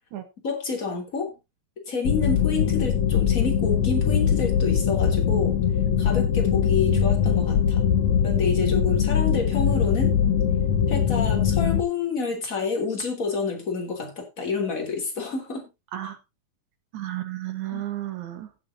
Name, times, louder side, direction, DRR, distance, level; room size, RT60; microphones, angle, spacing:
voice 1, 0.4-1.3 1.9-5.6 6.0-7.9 8.2-10.2 10.9-15.7 17.7-17.8, left 4 dB, 25° left, 3.1 m, -29 dB
sound 1, 2.0-11.8, left 8 dB, 70° left, 1.8 m, -22 dB
voice 2, 6.8-7.1 15.9-16.2 16.9-18.5, right 14 dB, 65° right, 2.4 m, -33 dB
17.0 x 7.7 x 2.7 m
omnidirectional pair, 4.2 m